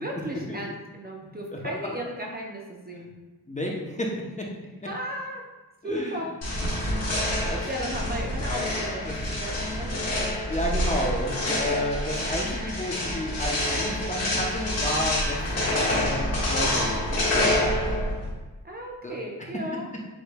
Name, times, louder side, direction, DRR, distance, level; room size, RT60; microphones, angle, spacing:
voice 1, 0.0-3.1 4.9-5.4 5.8-6.3 7.6-10.3 11.2-11.3 12.3-12.7 18.6-19.9, right 1 dB, 25° right, -1 dB, 0.6 m, -35 dB
voice 2, 3.5-4.5 5.8-6.2 7.4-7.6 9.1-9.2 10.5-17.9 19.0-19.5, equal, 20° left, -1 dB, 0.7 m, -32 dB
sound 1, 6.4-18.3, left 1 dB, 40° left, 1.5 m, -27 dB
7.9 x 3.0 x 2.2 m, 1.2 s
wide cardioid pair, 125°, 39 cm